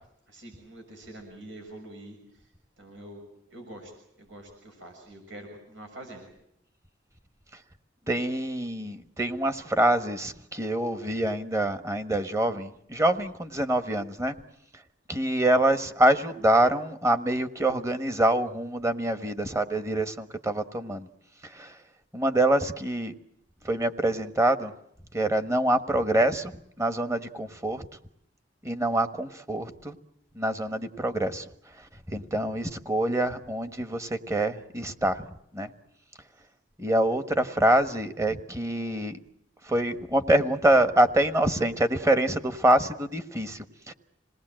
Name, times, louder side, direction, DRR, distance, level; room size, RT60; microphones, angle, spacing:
voice 1, 0.3-2.2 2.8-3.2 3.5-3.9 4.2-6.3, right 1 dB, 85° right, 3 dB, 6.7 m, -45 dB
voice 2, 8.1-14.3 15.1-21.1 21.5-21.7 22.1-23.1 23.6-24.7 25.1-26.5 26.8-27.8 28.6-29.9 30.3-31.4 32.1-35.2 35.5-35.7 36.8-39.2 39.7-43.9, right 1 dB, 15° right, 9 dB, 1.3 m, -25 dB
27.5 x 19.5 x 7.6 m, 0.76 s
head